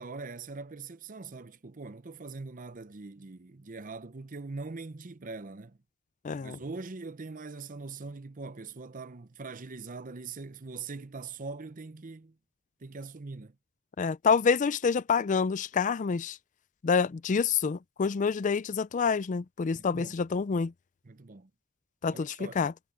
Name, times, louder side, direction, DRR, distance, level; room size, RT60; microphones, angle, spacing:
voice 1, 0.0-5.8 6.4-12.3 12.8-13.6 19.7-20.2 21.0-21.5 22.1-22.6, right 3 dB, 35° right, 0.7 m, -42 dB
voice 2, 6.2-6.6 14.0-16.4 16.8-20.7 22.0-22.7, left 5 dB, 35° left, 0.4 m, -27 dB
head